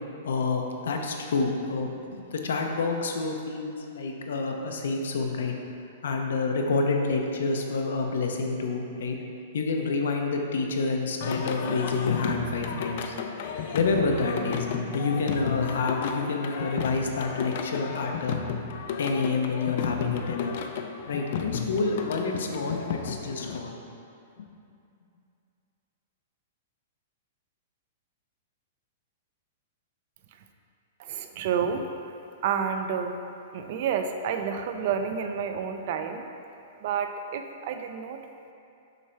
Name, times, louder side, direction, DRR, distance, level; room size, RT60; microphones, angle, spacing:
voice 1, 0.2-5.5 6.0-9.2 9.5-13.1 13.7-14.7 14.9-18.4 19.0-20.6 21.1-23.8, left 4 dB, 85° left, 2 dB, 0.7 m, -28 dB
Singing, 11.2-23.6, left 6 dB, 50° left, 0.4 m, -33 dB
voice 2, 31.0-31.9 32.4-33.2 33.5-36.3 36.8-38.3, right 7 dB, 45° right, 6 dB, 0.4 m, -30 dB
6.5 x 3.2 x 4.5 m, 2.6 s
hypercardioid pair, 165°, 0 cm